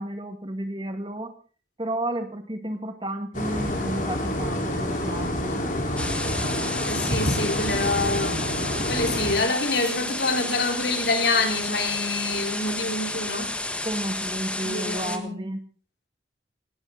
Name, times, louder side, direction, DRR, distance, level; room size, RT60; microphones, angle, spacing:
voice 1, 0.0-1.3 1.8-5.6 13.9-15.6, right 1 dB, 25° right, 8 dB, 1.9 m, -32 dB
sound 1, 3.3-9.4, left 1 dB, 45° left, 4.2 m, -28 dB
sound 2, 6.0-15.2, left 2 dB, 5° left, 1.4 m, -31 dB
voice 2, 6.7-8.4 8.9-13.5 14.6-15.5, left 3 dB, 75° left, 4 dB, 4.3 m, -26 dB
18.5 x 18.0 x 4.0 m, 0.39 s
head